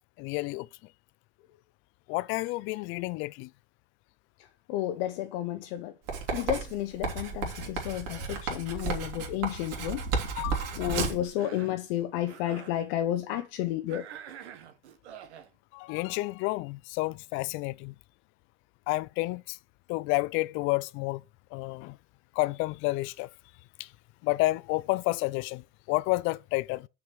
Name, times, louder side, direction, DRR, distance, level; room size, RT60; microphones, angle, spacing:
voice 1, 0.2-0.7 2.1-3.5 10.4-10.8 15.7-17.9 18.9-19.6 19.9-21.2 21.5-22.0 22.4-23.3 23.8-23.9 24.2-26.9, left 21 dB, 40° left, 0.4 m, -30 dB
voice 2, 4.7-5.9 6.3-10.0 10.8-14.0, left 13 dB, 55° left, 0.8 m, -31 dB
Writing, 6.1-11.3, right 4 dB, 45° right, 2.7 m, -33 dB
Cough, 11.2-11.8 12.2-12.8 13.9-15.5, right 9 dB, 75° right, 1.4 m, -46 dB
6.1 x 5.0 x 5.7 m
hypercardioid pair, 120°, 34 cm